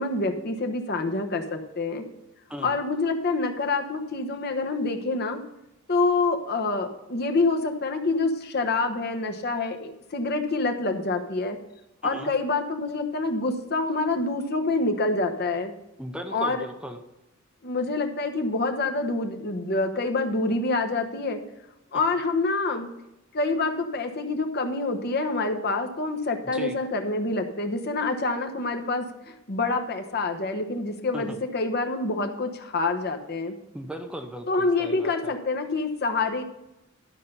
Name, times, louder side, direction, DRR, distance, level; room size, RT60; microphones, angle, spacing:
voice 1, 0.0-2.0 2.6-5.4 5.9-11.6 12.0-15.7 16.3-16.6 17.6-21.4 21.9-22.9 23.3-33.5 34.5-36.4, left 3 dB, 50° left, 5 dB, 1.0 m, -26 dB
voice 2, 16.0-17.0 26.5-26.8 31.1-31.4 33.7-35.3, equal, 5° right, 5 dB, 0.6 m, -37 dB
12.0 x 5.5 x 5.4 m, 0.91 s
head